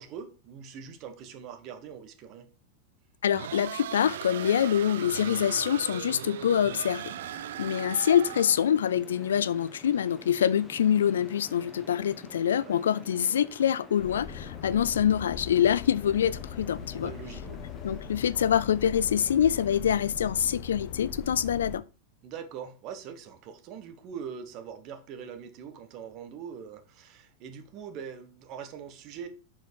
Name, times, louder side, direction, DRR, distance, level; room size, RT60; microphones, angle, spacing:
voice 1, 0.0-2.5 7.6-7.7 12.6-12.8 16.9-17.6 17.9-18.0 22.2-29.3, right 7 dB, 45° right, 1.2 m, -42 dB
voice 2, 3.2-7.1 7.6-17.1 17.8-21.8, left 9 dB, 90° left, 0.3 m, -25 dB
sound 1, 3.3-8.7, right 11 dB, 75° right, 0.3 m, -38 dB
sound 2, 5.1-19.9, left 2 dB, 5° left, 1.4 m, -51 dB
sound 3, 14.0-21.8, left 7 dB, 55° left, 0.7 m, -40 dB
6.1 x 4.5 x 4.6 m
hypercardioid pair, 120°, 0 cm